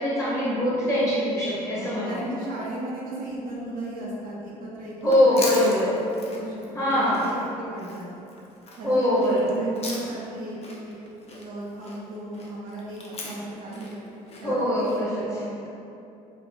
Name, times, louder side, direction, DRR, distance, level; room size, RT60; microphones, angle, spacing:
voice 1, 0.0-2.2 5.0-6.0 6.7-7.3 8.8-9.6 14.4-15.4, left 1 dB, 15° left, -9 dB, 1.4 m, -23 dB
voice 2, 1.6-4.9 5.3-5.8 6.3-8.1 8.8-10.6 10.8-11.0 11.3-14.0 14.4-15.7, right 1 dB, 55° right, -6 dB, 0.6 m, -36 dB
Chewing mastication, 5.0-10.4 10.6-15.0, left 2 dB, 35° left, 0.5 m, -39 dB
2.9 x 2.4 x 2.3 m, 2.7 s
supercardioid pair, 65°, 18 cm